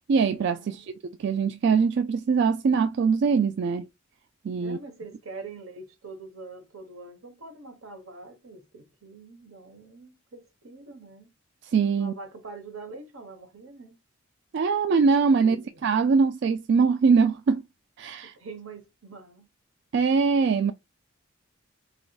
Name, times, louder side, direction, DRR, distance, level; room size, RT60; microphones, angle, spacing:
voice 1, 0.1-3.9 4.4-4.8 11.6-12.1 14.5-15.6 15.8-17.6 18.0-18.3 19.9-20.7, right 5 dB, 55° right, 0.3 m, -22 dB
voice 2, 4.6-11.3 12.0-14.0 15.3-15.8 18.2-19.5, right 3 dB, 80° right, 1.2 m, -44 dB
4.8 x 3.0 x 2.3 m
head